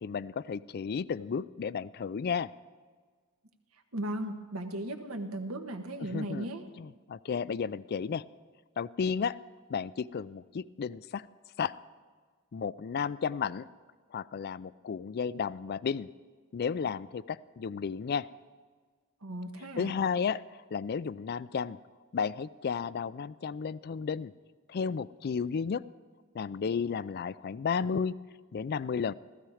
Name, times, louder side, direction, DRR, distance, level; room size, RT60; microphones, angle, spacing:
voice 1, 0.0-2.5 6.1-6.5 6.8-8.2 8.8-9.4 9.7-11.3 11.6-11.8 12.5-13.7 14.1-16.1 16.5-18.3 19.8-21.8 22.1-24.3 24.7-25.8 26.3-28.2 28.5-29.1, left 6 dB, 50° left, 18 dB, 0.4 m, -33 dB
voice 2, 3.9-6.6 19.2-19.9, right 1 dB, 80° right, 5 dB, 1.3 m, -36 dB
15.5 x 14.5 x 4.9 m, 1.5 s
head